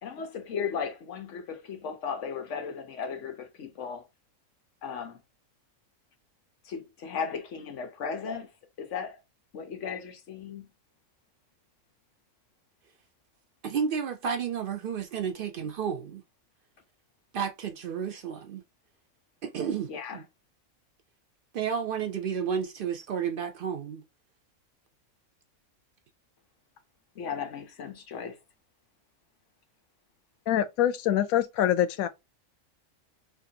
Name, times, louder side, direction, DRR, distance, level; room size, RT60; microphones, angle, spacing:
voice 1, 0.0-4.0 4.8-5.2 6.6-8.5 8.8-9.2 9.5-10.6 19.9-20.2 27.2-28.4, left 6 dB, 65° left, 1.0 m, -36 dB
voice 2, 13.6-16.2 17.3-18.6 19.4-20.2 21.5-24.0, right 7 dB, 75° right, 0.5 m, -31 dB
voice 3, 30.5-32.1, left 11 dB, 90° left, 1.0 m, -25 dB
4.3 x 2.6 x 2.8 m
omnidirectional pair, 1.4 m